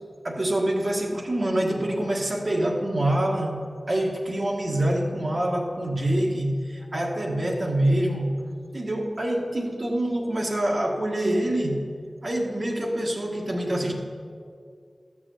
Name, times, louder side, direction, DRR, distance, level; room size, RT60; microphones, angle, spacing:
voice 1, 0.2-8.4 8.7-11.8 12.2-13.9, right 1 dB, 45° right, 0 dB, 1.7 m, -25 dB
13.0 x 6.2 x 7.8 m, 2.3 s
wide cardioid pair, 75°, 0 cm